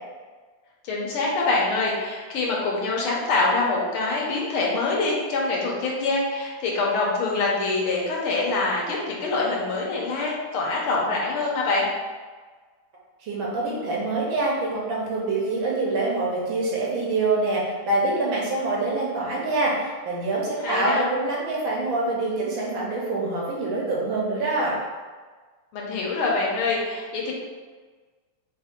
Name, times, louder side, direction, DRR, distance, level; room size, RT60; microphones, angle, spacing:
voice 1, 0.8-11.9 20.6-21.0 25.7-27.3, left 3 dB, 75° left, -3 dB, 1.8 m, -25 dB
voice 2, 13.2-24.8, right 2 dB, 70° right, -4 dB, 1.6 m, -25 dB
4.1 x 3.5 x 3.6 m, 1.4 s
omnidirectional pair, 2.4 m